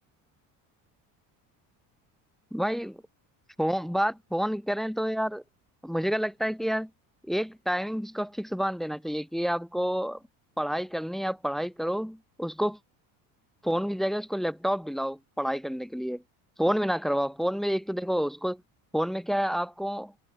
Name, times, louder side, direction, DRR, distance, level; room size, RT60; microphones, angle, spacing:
voice 1, 2.5-3.0 3.6-5.4 5.8-6.9 7.2-10.2 10.6-12.8 13.6-16.2 16.6-18.6 18.9-20.1, equal, ahead, 0.3 m, -29 dB
cardioid pair, 140°, 37 cm